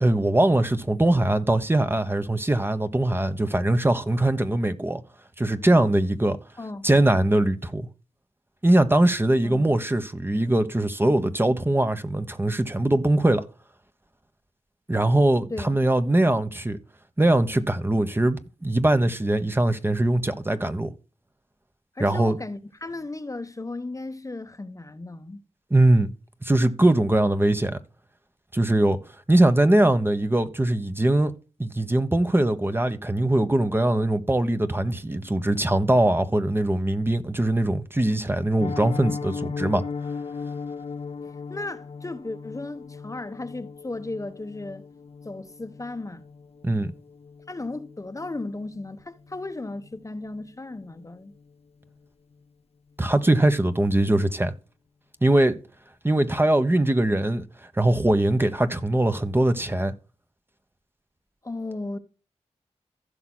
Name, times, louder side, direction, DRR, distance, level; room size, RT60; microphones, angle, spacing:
voice 1, 0.0-5.0 5.4-6.4 6.8-7.9 8.6-13.4 14.9-16.8 17.2-20.9 22.0-22.4 25.7-26.1 26.4-27.8 28.5-29.0 29.3-31.3 31.6-39.8 46.6-46.9 53.0-54.5 55.2-55.6 56.0-57.4 57.8-59.9, right 1 dB, 20° right, 1.0 m, -21 dB
voice 2, 6.6-6.9 9.4-9.7 15.5-15.7 21.9-25.4 41.2-44.9 45.2-46.3 47.5-51.3 61.4-62.0, left 2 dB, 25° left, 1.0 m, -35 dB
Piano, 38.6-49.5 49.8-50.0 50.3-50.4 50.8-51.0 51.4-51.5, left 5 dB, 55° left, 0.6 m, -37 dB
15.5 x 5.9 x 2.2 m
cardioid pair, 55°, 12 cm